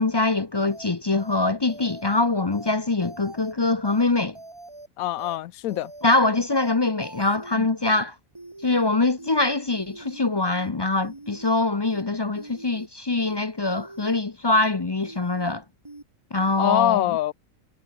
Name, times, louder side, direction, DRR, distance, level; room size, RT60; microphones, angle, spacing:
voice 1, 0.0-4.4 6.0-8.1 8.6-15.6 16.3-17.1, left 2 dB, 30° left, 0.5 m, -23 dB
sound 1, 0.7-0.9 1.2-1.4 1.7-2.2 2.5-2.7 3.0-3.5 3.8-4.0 4.3-4.9 5.2-5.4 5.7-6.2 6.5-6.7 7.0-7.5 7.8-8.0 8.3-8.9 9.2-9.4 9.7-10.2 10.5-10.7 11.0-11.5 11.8-12.0 12.3-12.9 13.2-13.4 13.7-14.2 14.5-14.7 15.0-15.5 15.8-16.0 16.3-16.7, right 2 dB, 20° right, 2.1 m, -43 dB
voice 2, 5.0-5.9 7.5-7.7 16.6-17.3, left 14 dB, 85° left, 1.1 m, -24 dB
omnidirectional pair, 1.5 m